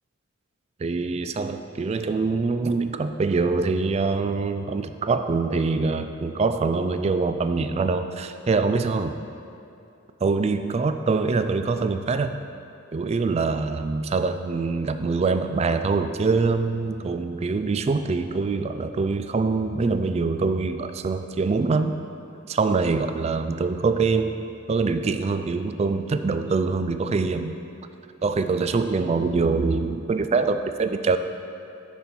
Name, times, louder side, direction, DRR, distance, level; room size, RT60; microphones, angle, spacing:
voice 1, 0.8-9.2 10.2-12.3 12.9-22.0 22.5-24.4 24.7-27.6 28.2-31.2, right 4 dB, 30° right, 9 dB, 0.3 m, -24 dB
7.3 x 6.9 x 4.4 m, 2.7 s
head